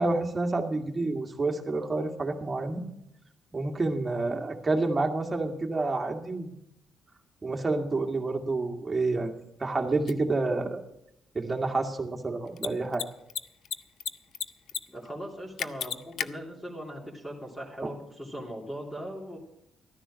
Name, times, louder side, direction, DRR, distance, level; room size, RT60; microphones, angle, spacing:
voice 1, 0.0-2.8 3.5-6.5 7.4-10.8 11.3-13.0 17.8-17.9, right 3 dB, 25° right, 2 dB, 1.9 m, -29 dB
Mechanisms, 10.1-10.2 12.5-12.7 12.9-13.0 13.3-14.1 14.3-14.8 15.1-15.2 15.6-16.3, left 9 dB, 70° left, 0.5 m, -31 dB
voice 2, 14.9-19.4, equal, 15° left, -3 dB, 3.0 m, -39 dB
13.0 x 10.0 x 6.3 m, 0.78 s
cardioid pair, 90°, 0 cm